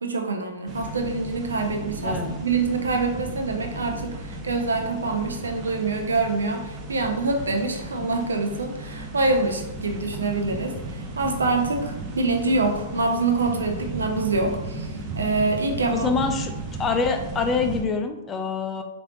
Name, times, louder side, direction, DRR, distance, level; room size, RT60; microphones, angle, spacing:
voice 1, 0.0-16.1, right 3 dB, 85° right, 4 dB, 0.5 m, -25 dB
sound 1, 0.7-17.8, right 2 dB, 30° right, 0.6 m, -35 dB
voice 2, 2.0-2.3 15.9-16.5 16.8-18.8, left 4 dB, 20° left, 5 dB, 0.4 m, -25 dB
3.2 x 2.5 x 2.9 m, 0.96 s
hypercardioid pair, 115°, 0 cm